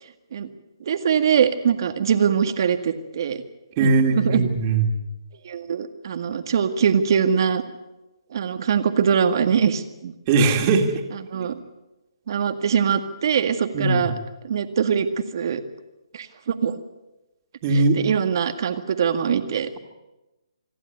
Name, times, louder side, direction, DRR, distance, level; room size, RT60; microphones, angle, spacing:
voice 1, 0.8-3.4 3.8-4.5 5.5-7.6 8.3-10.1 11.1-11.6 12.3-14.1 14.4-15.1 15.3-15.6 16.1-16.8 17.7-19.7, right 7 dB, 50° right, 9 dB, 1.9 m, -22 dB
voice 2, 3.8-4.9 10.3-10.9 11.4-11.5 13.7-14.0 17.6-18.0, right 3 dB, 30° right, 4 dB, 2.9 m, -19 dB
27.0 x 11.5 x 9.6 m, 1.0 s
hypercardioid pair, 155°, 3 cm